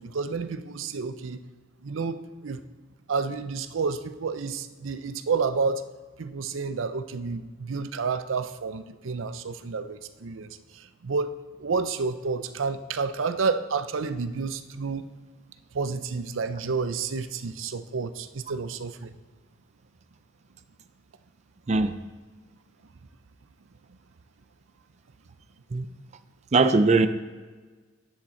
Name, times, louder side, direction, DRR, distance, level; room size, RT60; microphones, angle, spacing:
voice 1, 0.0-1.4 1.8-2.6 3.1-5.9 6.2-15.0 15.7-19.1, right 4 dB, 90° right, 12 dB, 0.6 m, -30 dB
voice 2, 26.5-27.1, right 3 dB, 35° right, 11 dB, 0.4 m, -20 dB
10.0 x 10.0 x 4.3 m, 1.4 s
head